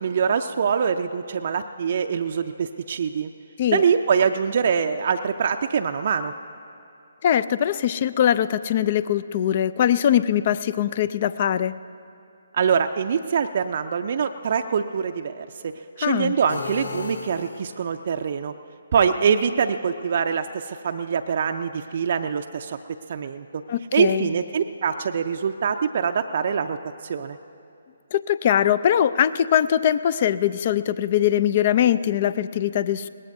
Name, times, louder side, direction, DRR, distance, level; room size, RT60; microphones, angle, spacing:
voice 1, 0.0-3.3 3.7-6.3 12.5-18.5 18.9-22.8 23.1-23.6 23.9-26.8 27.0-27.4, right 6 dB, 50° right, 6 dB, 0.5 m, -24 dB
voice 2, 7.2-11.7 16.0-16.3 23.7-24.3 28.1-33.1, left 10 dB, 40° left, 16 dB, 0.4 m, -21 dB
sound 1, 16.5-18.1, left 5 dB, 65° left, 0.8 m, -35 dB
22.0 x 18.5 x 2.7 m, 2.6 s
figure-of-eight pair, 140°, 0 cm